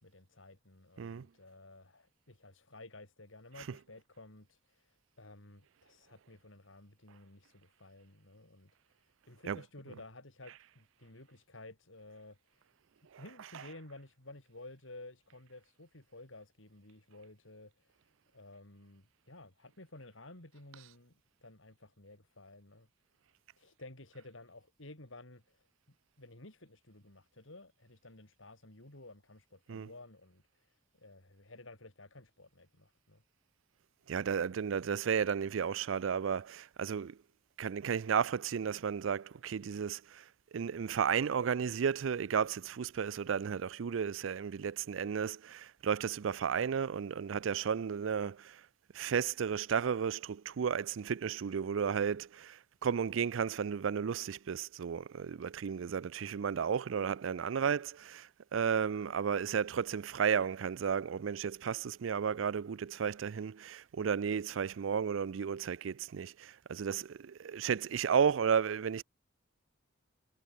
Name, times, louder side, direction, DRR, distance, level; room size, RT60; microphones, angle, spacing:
voice 1, 0.0-4.9 5.2-8.7 9.3-12.4 13.2-17.7 18.3-21.1 21.4-22.9 23.6-25.6 26.2-30.4 31.0-33.2, left 2 dB, 80° left, 4.8 m, -53 dB
voice 2, 9.4-10.0 10.5-10.6 13.1-13.8 20.7-20.8 29.7-29.9 34.1-37.2 37.6-40.2 40.5-48.6 48.9-69.0, right 7 dB, 80° right, 0.4 m, -33 dB
head